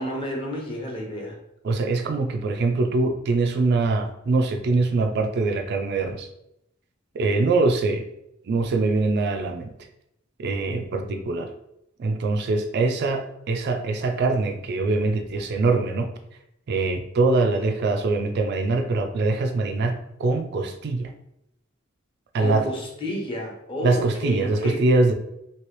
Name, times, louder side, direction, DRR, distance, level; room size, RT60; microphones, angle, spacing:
voice 1, 0.0-1.4 22.4-24.8, equal, 25° left, -1 dB, 0.8 m, -30 dB
voice 2, 1.6-6.3 7.2-8.0 8.5-9.7 10.4-11.5 12.0-16.1 16.7-21.1 22.3-22.7 23.8-25.1, right 3 dB, 55° right, 5 dB, 0.3 m, -23 dB
3.0 x 2.8 x 3.0 m, 0.81 s
head